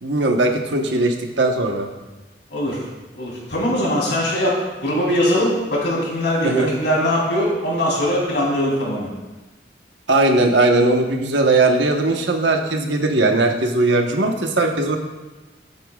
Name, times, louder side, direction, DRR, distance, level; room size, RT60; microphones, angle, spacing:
voice 1, 0.0-1.9 6.4-6.7 10.1-15.0, right 2 dB, 85° right, 3 dB, 1.3 m, -19 dB
voice 2, 3.2-4.5 4.8-9.1, equal, 75° left, -4 dB, 3.5 m, -21 dB
20.5 x 8.7 x 2.4 m, 1.2 s
head